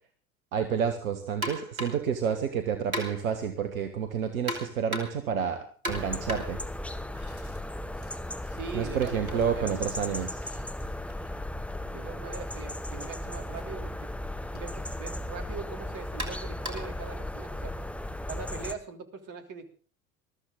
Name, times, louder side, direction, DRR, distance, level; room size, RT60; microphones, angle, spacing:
voice 1, 0.5-6.6 8.7-10.4, right 7 dB, 70° right, 7 dB, 1.5 m, -29 dB
sound 1, 1.4-2.1 2.9-3.4 4.5-5.3 5.8-7.6 7.9-11.8 12.9-13.1 13.5-13.6 14.6-14.7 16.2-17.0, equal, 90° right, 2.9 m, -39 dB
sound 2, 5.9-18.8, left 1 dB, 5° left, 1.2 m, -36 dB
voice 2, 8.5-9.7 11.9-14.1 14.5-17.7 18.2-19.6, right 5 dB, 45° right, 6 dB, 3.2 m, -41 dB
21.5 x 13.5 x 3.8 m, 0.38 s
figure-of-eight pair, 70°, 42 cm